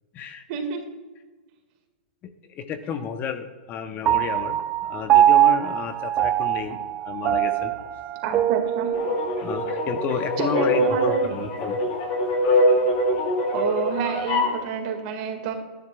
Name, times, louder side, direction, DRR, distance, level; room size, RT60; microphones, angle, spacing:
voice 1, 0.5-0.8 8.2-8.9 10.4-11.4 13.5-15.5, right 6 dB, 50° right, 4 dB, 1.9 m, -28 dB
voice 2, 2.5-4.6 4.8-6.8 7.0-7.7 9.4-11.8, left 7 dB, 30° left, 8 dB, 0.8 m, -31 dB
Piano, 4.1-10.7, right 12 dB, 30° right, 0.5 m, -23 dB
sound 1, 8.9-14.6, left 1 dB, 50° left, 2.3 m, -23 dB
13.0 x 10.5 x 2.3 m, 1.3 s
hypercardioid pair, 130°, 6 cm